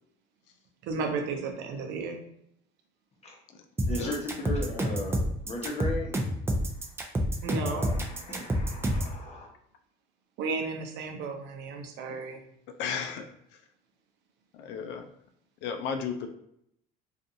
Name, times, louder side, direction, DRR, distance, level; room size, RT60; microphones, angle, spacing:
voice 1, 0.8-2.2 7.4-7.9 10.4-12.4, right 4 dB, 65° right, 4 dB, 0.6 m, -33 dB
sound 1, 3.8-9.2, equal, 15° right, 0.4 m, -28 dB
voice 2, 3.9-6.1 6.7-6.9 7.4-9.5, left 1 dB, 35° left, -1 dB, 0.9 m, -36 dB
voice 3, 12.8-13.3 14.5-15.1 15.6-16.3, left 6 dB, 70° left, 6 dB, 0.4 m, -33 dB
2.5 x 2.4 x 2.7 m, 0.73 s
supercardioid pair, 105°, 19 cm